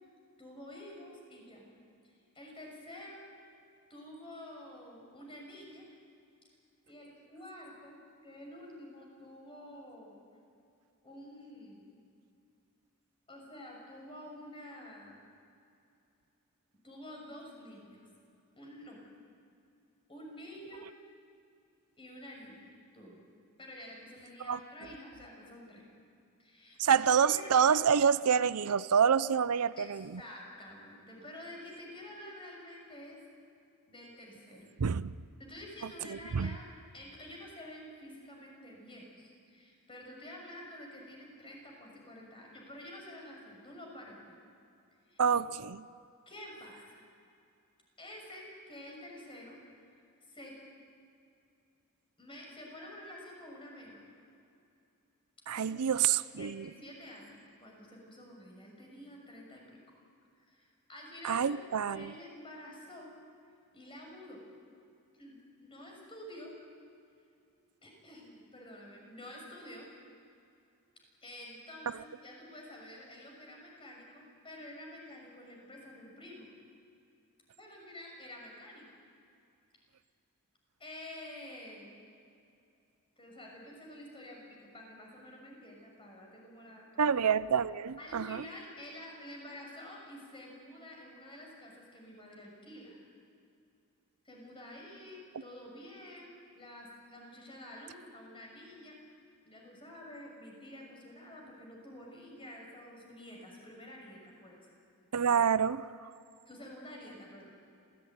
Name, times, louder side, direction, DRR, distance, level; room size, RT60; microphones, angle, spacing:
voice 1, 0.4-1.7 2.0-3.2 3.9-5.9 6.9-10.2 11.0-11.8 13.3-15.2 16.8-18.0 18.6-19.0 20.1-20.9 22.0-23.2 23.6-25.8 26.4-27.5 29.8-29.9 30.2-33.2 33.9-34.7 35.4-36.7 36.9-44.4 45.1-45.2 46.3-47.0 48.0-49.6 50.3-50.6 52.2-54.0 55.5-55.8 56.3-59.6 60.4-63.1 63.7-64.4 65.2-66.5 67.8-69.9 71.2-76.5 77.6-78.9 80.8-81.9 83.2-87.1 88.0-93.0 94.2-98.9 99.4-104.6 106.5-107.6, left 1 dB, 25° left, 0 dB, 6.5 m, -49 dB
voice 2, 26.8-30.2 34.8-35.1 36.3-36.6 45.2-45.8 55.5-56.7 61.2-62.1 87.0-88.4 105.1-106.1, right 7 dB, 85° right, 15 dB, 0.6 m, -27 dB
27.0 x 17.0 x 9.4 m, 2.6 s
head